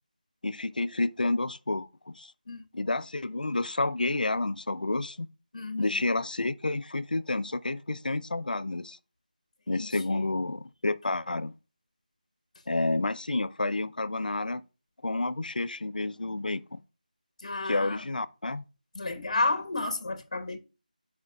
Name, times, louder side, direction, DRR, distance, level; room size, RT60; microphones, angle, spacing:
voice 1, 0.4-2.3 2.7-5.3 5.8-9.0 9.7-11.5 12.7-14.6 15.0-16.8 17.6-18.6, left 2 dB, 70° left, 0.5 m, -30 dB
voice 2, 5.5-6.0 9.8-10.2 17.4-18.0 18.9-20.6, left 2 dB, 45° left, 1.1 m, -31 dB
12.0 x 5.1 x 2.3 m
figure-of-eight pair, 170°, 5 cm